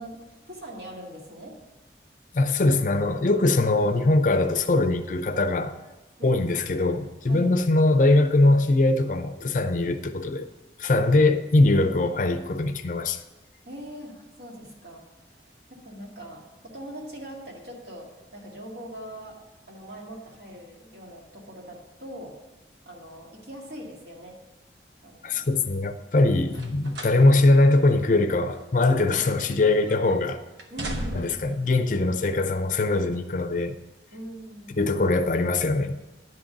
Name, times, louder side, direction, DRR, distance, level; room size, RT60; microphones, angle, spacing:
voice 1, 0.0-1.6 6.2-6.5 7.3-7.5 11.2-11.4 13.7-19.4 19.7-22.4 22.9-24.4 25.0-25.5 30.7-31.3 34.1-34.9, equal, 70° right, 1.9 m, -41 dB
voice 2, 2.3-5.7 6.2-10.5 10.8-13.2 25.2-30.4 31.1-33.8 34.8-36.0, left 2 dB, 45° left, 0.5 m, -22 dB
sound 1, 26.5-27.2 27.6-27.8 28.5-29.5 29.8-30.2 30.6-31.5 32.4-32.5, right 1 dB, 85° right, 1.0 m, -36 dB
10.5 x 3.9 x 7.2 m
head